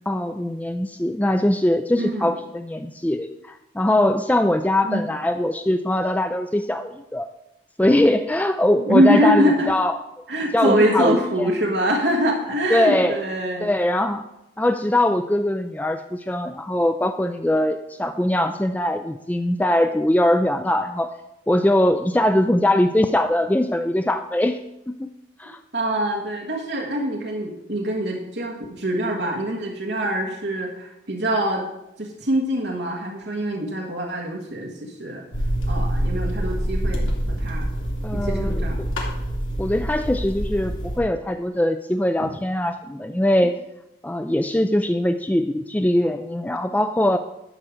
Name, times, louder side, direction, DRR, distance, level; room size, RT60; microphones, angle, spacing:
voice 1, 0.1-7.3 7.8-10.0 10.5-11.5 12.7-13.2 13.6-14.3 14.6-21.1 21.5-24.6 24.9-25.1 25.4-25.6 38.0-38.9 39.6-43.6 44.0-47.2, left 1 dB, 10° left, 8 dB, 0.3 m, -21 dB
voice 2, 1.9-2.3 4.8-5.0 8.7-9.7 10.3-13.7 25.7-31.6 32.0-35.2 35.7-37.7 38.1-38.9 42.2-42.3, equal, 55° right, -1 dB, 1.5 m, -24 dB
sound 1, 35.3-41.0, equal, 90° left, 2.8 m, -25 dB
12.0 x 4.9 x 7.7 m, 0.86 s
head